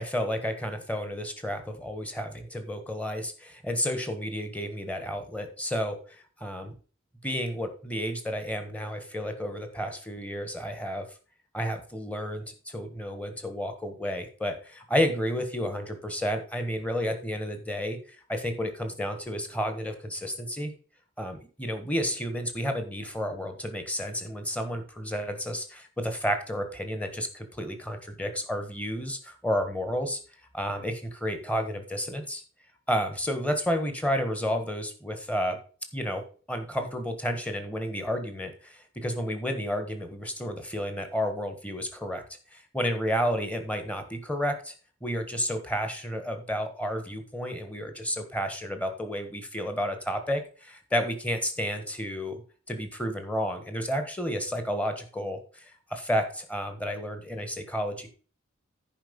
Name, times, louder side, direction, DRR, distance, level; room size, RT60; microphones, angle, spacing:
voice 1, 0.0-6.7 7.2-11.1 11.5-20.7 21.2-30.2 30.5-32.4 32.9-35.6 35.9-36.2 36.5-42.2 42.5-44.7 45.0-52.4 52.7-58.1, equal, 5° left, 7 dB, 1.4 m, -31 dB
10.5 x 5.1 x 5.3 m, 0.39 s
head